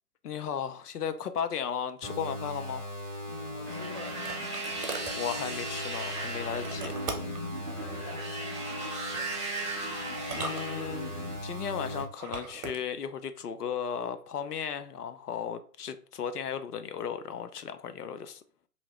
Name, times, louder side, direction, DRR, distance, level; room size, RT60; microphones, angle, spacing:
voice 1, 0.2-2.9 5.1-7.0 10.3-11.2 11.4-18.4, left 7 dB, 80° left, 0.6 m, -35 dB
sound 1, 2.0-12.0, left 1 dB, 45° left, 1.5 m, -39 dB
voice 2, 3.3-4.4 7.6-8.9, left 2 dB, 20° left, 1.2 m, -47 dB
sound 2, 3.4-5.2 6.6-7.5 8.8-9.3 10.2-11.2 12.1-12.8, right 4 dB, 65° right, 0.8 m, -40 dB
sound 3, 3.7-11.4, right 2 dB, 20° right, 0.3 m, -37 dB
2.8 x 2.8 x 2.9 m
figure-of-eight pair, 120°, 46 cm